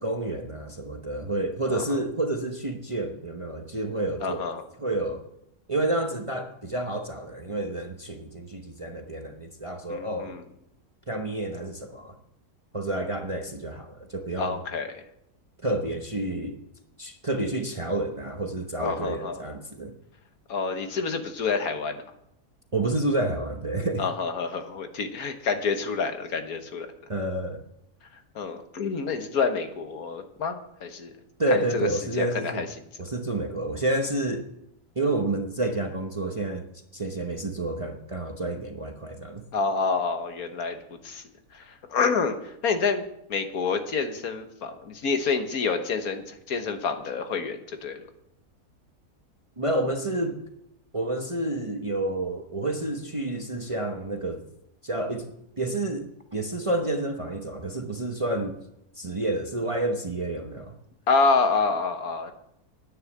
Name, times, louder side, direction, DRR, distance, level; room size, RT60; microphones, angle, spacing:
voice 1, 0.0-4.5 4.8-5.2 5.7-10.3 11.1-12.2 12.7-14.6 15.6-16.6 17.0-19.9 22.7-24.0 27.1-27.6 31.4-32.7 33.0-34.5 35.0-36.6 36.9-39.4 49.6-50.4 50.9-54.4 54.8-55.3 55.6-58.6 59.0-60.7, right 2 dB, 25° right, 4 dB, 0.8 m, -29 dB
voice 2, 1.7-2.0 4.2-4.6 9.9-10.4 14.4-15.0 18.8-19.4 20.5-22.0 24.0-26.9 28.3-31.1 31.5-31.9 32.2-32.7 39.5-41.2 41.5-43.0 43.3-48.1 61.1-62.3, left 4 dB, 70° left, 7 dB, 1.7 m, -28 dB
10.0 x 9.6 x 7.2 m, 0.79 s
omnidirectional pair, 1.6 m